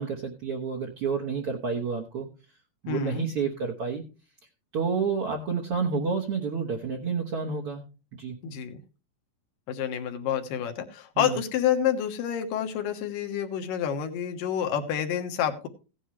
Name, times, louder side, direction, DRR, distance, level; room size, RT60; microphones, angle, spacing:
voice 1, 0.0-2.3 2.8-4.0 4.7-7.8 8.1-8.4 11.2-11.4, right 5 dB, 55° right, 1 dB, 1.7 m, -29 dB
voice 2, 2.9-3.3 8.4-8.8 9.7-15.7, left 9 dB, 75° left, 6 dB, 2.8 m, -28 dB
16.5 x 10.0 x 3.2 m, 0.33 s
omnidirectional pair, 4.1 m